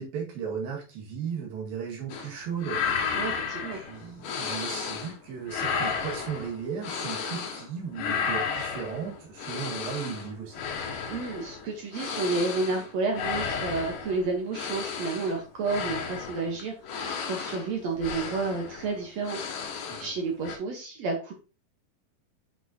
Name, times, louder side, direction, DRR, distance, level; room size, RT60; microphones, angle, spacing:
voice 1, 0.0-3.1 3.7-10.6 19.9-20.1, right 7 dB, 80° right, -2 dB, 3.7 m, -36 dB
sound 1, 2.1-2.3 2.6-5.2 5.4-7.7 7.9-20.2 20.4-20.6, left 6 dB, 70° left, 2.9 m, -33 dB
voice 2, 3.1-3.8 11.1-16.7 17.3-19.4 20.0-21.3, right 3 dB, 60° right, 2 dB, 2.0 m, -30 dB
7.5 x 6.4 x 2.9 m, 0.32 s
omnidirectional pair, 4.1 m